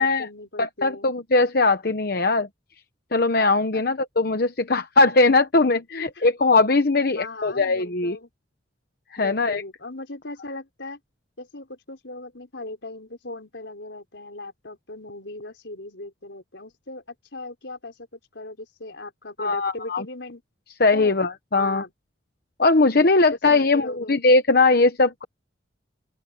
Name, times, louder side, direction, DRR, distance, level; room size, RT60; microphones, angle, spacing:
voice 1, 0.0-1.1 3.7-3.8 5.9-6.3 7.1-8.3 9.2-11.0 11.4-20.4 20.9-21.1 21.5-21.9 23.0-23.2 23.5-24.2, left 2 dB, 75° left, 4.4 m, -39 dB
voice 2, 0.6-2.5 3.1-8.2 9.2-9.6 19.4-20.0 20.8-21.8 22.6-25.2, left 3 dB, 55° left, 1.0 m, -20 dB
open air
head